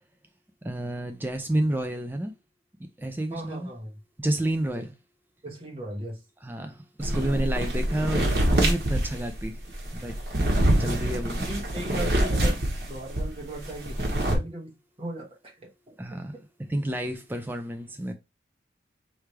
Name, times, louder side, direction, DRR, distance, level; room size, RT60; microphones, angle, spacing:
voice 1, 0.6-2.3 3.0-3.7 4.2-4.9 6.4-9.7 9.9-10.3 10.8-11.5 16.0-16.4 16.7-18.1, right 1 dB, 10° right, 0.4 m, -30 dB
voice 2, 3.3-3.9 4.7-4.8 5.4-6.2 11.3-14.0 14.3-15.7 16.1-16.4, right 1 dB, 30° right, 1.3 m, -38 dB
sound 1, 7.0-13.3 13.6-14.4, right 1 dB, 55° right, 1.4 m, -25 dB
4.7 x 3.2 x 3.3 m
head